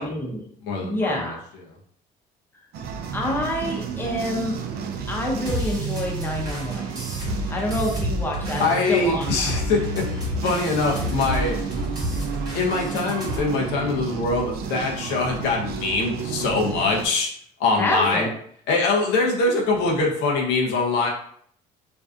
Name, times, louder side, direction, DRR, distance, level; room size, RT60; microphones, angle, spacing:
voice 1, 0.0-0.5 0.8-1.4 3.1-4.6 5.1-6.9 7.5-9.6 17.8-18.3, left 1 dB, 10° left, -1 dB, 0.6 m, -27 dB
voice 2, 0.6-1.3 8.6-11.6 12.5-17.3 17.6-18.3 18.7-21.1, left 3 dB, 85° left, -1 dB, 0.6 m, -23 dB
sound 1, 2.7-17.1, right 6 dB, 65° right, 0.4 m, -32 dB
sound 2, 5.5-13.4, left 1 dB, 20° right, 0.9 m, -31 dB
2.6 x 2.2 x 2.4 m, 0.64 s
cardioid pair, 110°, 17 cm